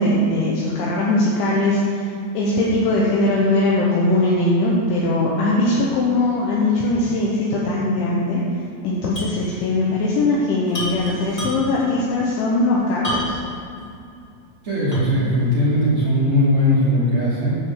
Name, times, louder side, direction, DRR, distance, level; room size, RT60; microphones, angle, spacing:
voice 1, 0.0-8.4 8.8-13.4, left 2 dB, 75° left, -5 dB, 3.3 m, -20 dB
sound 1, 9.1-9.4 9.7-9.8 10.7-11.9 13.0-13.6 14.1-14.2 14.9-15.3, left 1 dB, 45° left, 0.5 m, -29 dB
voice 2, 14.6-17.6, left 1 dB, 35° right, -9 dB, 2.8 m, -19 dB
12.0 x 5.3 x 7.3 m, 2.5 s
omnidirectional pair, 5.8 m